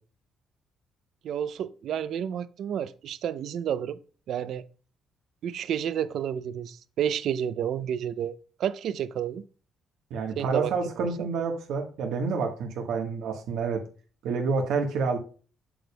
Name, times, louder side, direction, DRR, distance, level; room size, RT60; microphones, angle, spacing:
voice 1, 1.2-4.0 4.3-4.6 5.4-9.4 10.4-11.3, right 9 dB, 60° right, 0.5 m, -31 dB
voice 2, 10.1-13.8 14.2-15.2, right 4 dB, 85° right, 1.3 m, -28 dB
7.7 x 6.9 x 2.2 m
cardioid pair, 160°, 0 cm